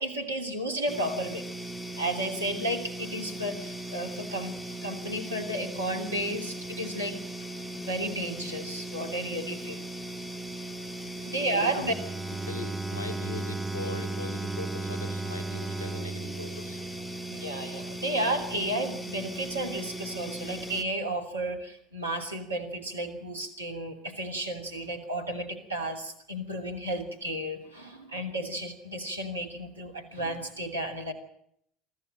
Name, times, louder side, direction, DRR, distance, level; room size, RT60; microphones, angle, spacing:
voice 1, 0.0-1.5 2.0-4.6 4.8-7.2 7.7-9.8 11.3-11.9 17.3-31.1, right 1 dB, 90° right, 3 dB, 2.9 m, -33 dB
sound 1, 0.9-20.8, right 1 dB, 15° left, 2.2 m, -38 dB
voice 2, 11.1-11.9 12.5-16.8, left 3 dB, 85° left, 8 dB, 2.2 m, -40 dB
Bowed string instrument, 11.8-17.7, right 3 dB, 15° right, 1.0 m, -36 dB
23.5 x 14.5 x 8.9 m, 0.72 s
figure-of-eight pair, 65°, 0 cm